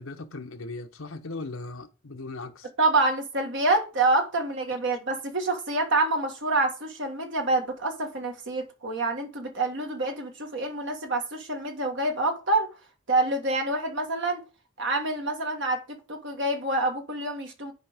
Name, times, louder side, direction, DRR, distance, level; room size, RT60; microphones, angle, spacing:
voice 1, 0.0-2.7, left 3 dB, 60° left, 1.0 m, -38 dB
voice 2, 2.8-12.7 13.1-14.4 14.8-15.8 16.1-17.7, right 2 dB, 55° right, 1.5 m, -27 dB
10.5 x 5.0 x 3.6 m
head